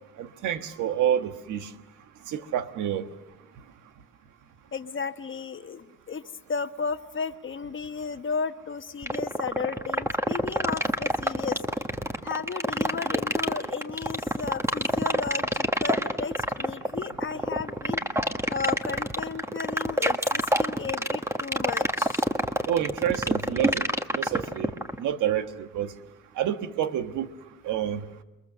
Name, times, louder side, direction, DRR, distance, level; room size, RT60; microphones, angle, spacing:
voice 1, 0.2-1.7 2.3-3.1 22.7-23.8 24.1-24.7 25.0-25.9 26.4-27.3 27.6-28.0, right 10 dB, 80° right, 1.4 m, -28 dB
voice 2, 4.7-6.2 6.5-11.6 12.2-22.3, left 5 dB, 40° left, 1.3 m, -34 dB
sound 1, 9.0-25.0, right 1 dB, 10° right, 1.5 m, -25 dB
28.5 x 22.5 x 6.8 m
cardioid pair, 90°, 30 cm